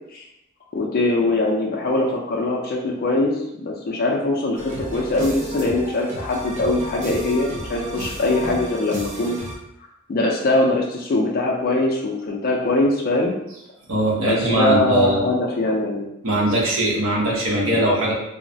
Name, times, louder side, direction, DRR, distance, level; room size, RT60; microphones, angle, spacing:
voice 1, 0.7-9.4 10.1-13.3 14.2-16.1, left 2 dB, 45° left, -2 dB, 0.4 m, -22 dB
sound 1, 4.5-9.6, right 1 dB, 35° right, 0.5 m, -33 dB
voice 2, 13.9-15.2 16.2-18.1, right 1 dB, 75° right, -4 dB, 0.8 m, -20 dB
2.9 x 2.0 x 2.6 m, 0.84 s
head